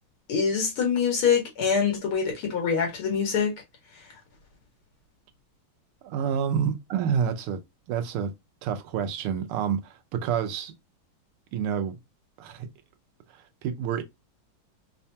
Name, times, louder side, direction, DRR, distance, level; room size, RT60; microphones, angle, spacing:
voice 1, 0.3-3.5, left 6 dB, 75° left, 2.4 m, -24 dB
voice 2, 6.0-7.6 7.9-8.3 8.6-10.7 11.5-12.0 12.4-12.7 13.6-14.0, right 7 dB, 90° right, 1.6 m, -28 dB
5.1 x 2.2 x 2.7 m
omnidirectional pair, 2.4 m